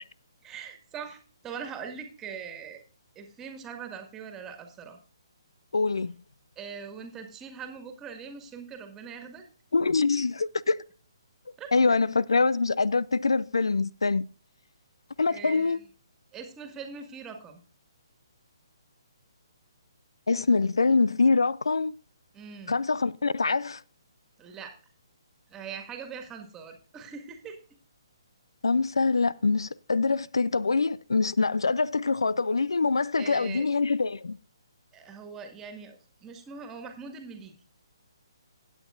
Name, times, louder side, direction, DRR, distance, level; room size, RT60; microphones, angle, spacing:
voice 1, 0.4-2.8 3.2-5.0 6.6-9.5 11.6-11.7 15.3-15.9 16.3-17.6 22.3-22.8 24.4-24.8 25.5-27.6 33.2-33.7 34.9-37.5, right 6 dB, 15° right, 1.9 m, -42 dB
voice 2, 5.7-6.1 9.7-10.8 11.7-14.3 15.2-15.8 20.3-21.9 22.7-23.8 28.6-34.4, left 4 dB, 70° left, 0.4 m, -24 dB
16.5 x 8.8 x 2.5 m
figure-of-eight pair, 135°, 3 cm